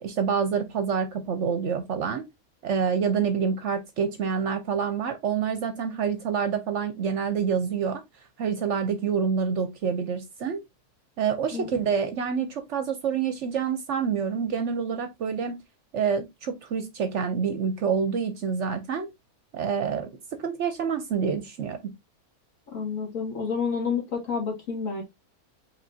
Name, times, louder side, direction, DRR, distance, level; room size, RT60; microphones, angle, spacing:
voice 1, 0.0-2.2 2.6-8.0 8.4-10.6 11.2-15.6 15.9-19.1 19.5-20.1 20.4-21.8, right 6 dB, 65° right, 0.9 m, -27 dB
voice 2, 22.7-25.0, left 5 dB, 60° left, 1.9 m, -29 dB
5.3 x 3.3 x 2.6 m
omnidirectional pair, 1.6 m